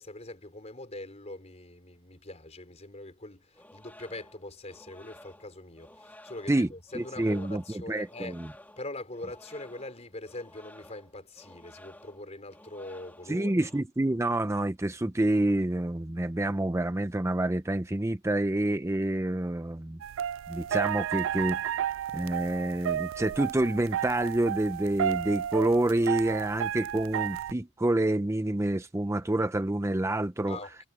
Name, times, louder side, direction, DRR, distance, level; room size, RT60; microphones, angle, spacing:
voice 1, 0.0-8.4 8.8-13.7 30.5-30.9, left 2 dB, 35° left, 4.4 m, -43 dB
sound 1, 3.5-13.8, left 1 dB, 10° left, 2.5 m, -53 dB
voice 2, 6.9-8.5 13.3-20.0 20.5-30.6, right 1 dB, 15° right, 0.5 m, -28 dB
sound 2, 20.0-27.5, right 10 dB, 85° right, 0.3 m, -32 dB
head